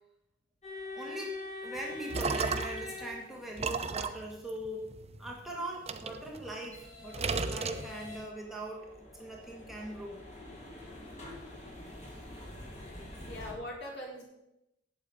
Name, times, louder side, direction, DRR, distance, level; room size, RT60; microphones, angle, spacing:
sound 1, 0.6-3.8 5.9-13.5, left 2 dB, 35° left, 2.9 m, -45 dB
voice 1, 0.9-4.9 5.2-10.2, right 1 dB, ahead, -2 dB, 1.8 m, -41 dB
sound 2, 1.8-2.9 3.6-5.3 5.9-6.8 7.1-8.3, right 4 dB, 35° right, 0.7 m, -34 dB
voice 2, 13.3-14.2, left 1 dB, 60° left, -2 dB, 4.4 m, -41 dB
8.8 x 8.1 x 8.5 m, 0.89 s
head